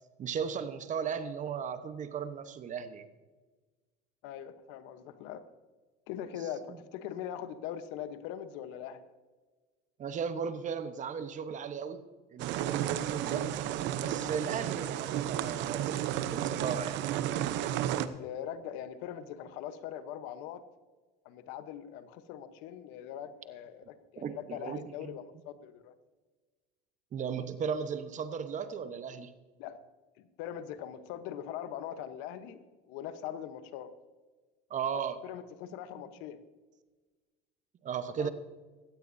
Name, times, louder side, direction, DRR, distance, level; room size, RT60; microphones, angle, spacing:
voice 1, 0.2-3.1 10.0-12.0 12.3-13.5 14.0-17.0 24.2-25.1 27.1-29.3 34.7-35.2 37.8-38.3, right 7 dB, 35° right, 10 dB, 1.1 m, -36 dB
voice 2, 4.2-5.4 6.1-9.1 18.0-20.6 21.2-25.9 29.6-29.8 30.2-32.6 32.9-33.9 35.2-36.4 38.2-38.3, left 10 dB, 70° left, 11 dB, 1.1 m, -41 dB
sound 1, 12.4-18.1, right 11 dB, 60° right, 0.8 m, -32 dB
16.0 x 14.5 x 2.7 m, 1.3 s
supercardioid pair, 110°, 21 cm